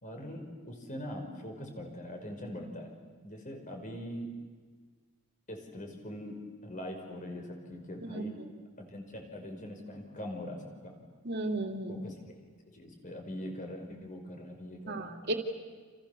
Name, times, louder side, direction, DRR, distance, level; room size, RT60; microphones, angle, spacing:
voice 1, 0.0-2.9 3.2-4.3 5.5-6.4 6.6-8.3 8.8-11.0 11.9-12.1 12.7-15.1, left 1 dB, 35° left, 3 dB, 5.2 m, -42 dB
voice 2, 8.0-8.5 11.2-12.0 14.9-15.3, right 2 dB, 50° right, 4 dB, 2.9 m, -35 dB
29.5 x 28.5 x 7.1 m, 1.5 s
head